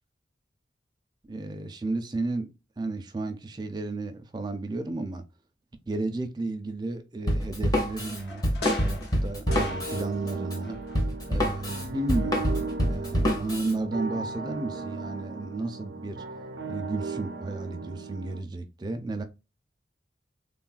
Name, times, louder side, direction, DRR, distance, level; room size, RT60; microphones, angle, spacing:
voice 1, 1.2-5.3 5.9-8.4 8.8-10.8 11.3-16.2 16.7-19.2, right 2 dB, 25° right, 0.4 m, -33 dB
Drum kit, 7.3-13.7, equal, 20° left, 0.7 m, -27 dB
sound 1, 7.9-10.4 10.6-11.7 12.0-12.1, left 3 dB, 65° left, 0.7 m, -40 dB
sound 2, 9.5-18.4, right 3 dB, 85° right, 0.5 m, -36 dB
3.4 x 2.3 x 2.4 m
head